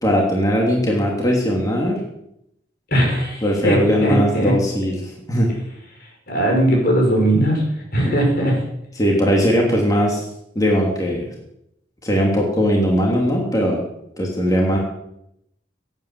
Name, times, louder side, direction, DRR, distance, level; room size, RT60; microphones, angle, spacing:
voice 1, 0.0-2.0 3.4-5.5 8.0-8.1 9.0-10.3 10.5-11.2 12.0-13.8 14.2-14.8, equal, 20° left, -1 dB, 3.1 m, -19 dB
voice 2, 2.9-4.6 6.3-7.6 7.9-8.7, right 1 dB, 60° left, 0 dB, 5.6 m, -19 dB
16.5 x 9.6 x 7.7 m, 0.80 s
head